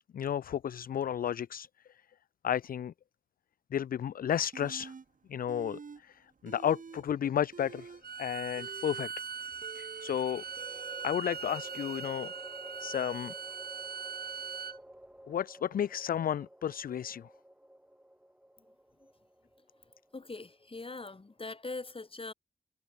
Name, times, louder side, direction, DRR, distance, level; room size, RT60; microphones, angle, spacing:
voice 1, 0.1-2.0 2.4-2.9 3.7-4.9 5.3-9.1 9.7-10.4 11.0-12.3 12.8-13.3 15.3-17.3, left 9 dB, 60° left, 0.4 m, -33 dB
sound 1, 4.5-5.0 5.5-6.0 6.3-7.0 7.4-12.0, right 5 dB, 55° right, 2.2 m, -48 dB
sound 2, 7.2-7.8 10.0-21.3, right 1 dB, 5° right, 2.6 m, -52 dB
Bowed string instrument, 8.0-14.8, right 6 dB, 70° right, 2.9 m, -41 dB
voice 2, 20.1-22.3, left 3 dB, 35° left, 5.7 m, -42 dB
cardioid pair, 75°, 16 cm